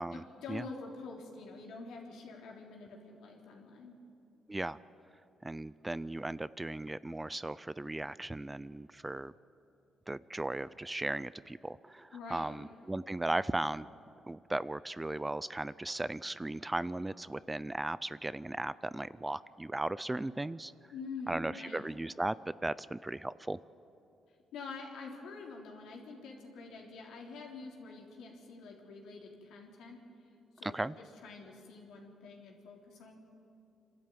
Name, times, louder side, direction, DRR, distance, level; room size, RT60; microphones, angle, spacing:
voice 1, 0.1-3.9 12.1-12.5 20.9-21.8 24.5-30.0 30.6-33.2, left 4 dB, 80° left, 0 dB, 3.5 m, -46 dB
voice 2, 5.4-9.3 10.1-13.9 14.3-20.7 21.3-23.6 30.6-31.0, right 2 dB, 15° right, 18 dB, 0.4 m, -37 dB
26.5 x 13.0 x 9.1 m, 2.8 s
cardioid pair, 90°, 0 cm